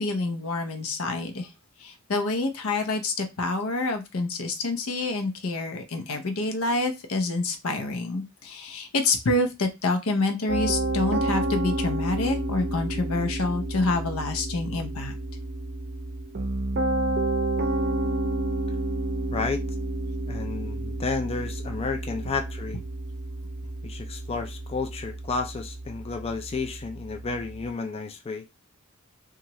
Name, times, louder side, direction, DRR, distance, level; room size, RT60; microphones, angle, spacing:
voice 1, 0.0-1.5 1.8-15.1, left 2 dB, 90° left, 0.7 m, -27 dB
Piano, 10.5-27.6, right 2 dB, 50° right, 0.5 m, -30 dB
voice 2, 19.3-19.6 20.3-22.8 23.8-28.5, left 4 dB, 30° left, 0.3 m, -31 dB
2.8 x 2.4 x 3.0 m
head